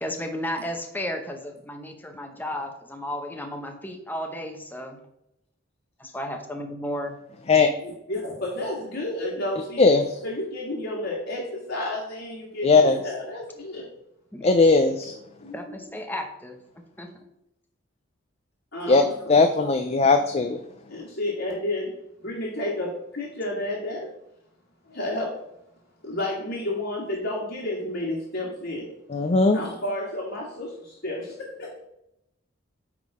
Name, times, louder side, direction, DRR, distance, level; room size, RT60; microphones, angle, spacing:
voice 1, 0.0-5.0 6.0-7.2 14.3-14.5 15.5-16.6 17.0-17.2, left 1 dB, 10° left, 4 dB, 0.9 m, -33 dB
voice 2, 7.8-9.9 10.2-13.9 15.4-15.7 18.7-19.4 20.9-24.1 24.9-25.5 26.0-28.9 29.5-31.8, left 1 dB, 60° left, -5 dB, 1.9 m, -31 dB
voice 3, 9.8-10.2 12.6-13.0 14.4-15.1 18.9-19.0 19.3-20.6 29.1-29.6, left 3 dB, 30° left, 5 dB, 0.5 m, -18 dB
9.2 x 3.7 x 4.9 m, 0.82 s
head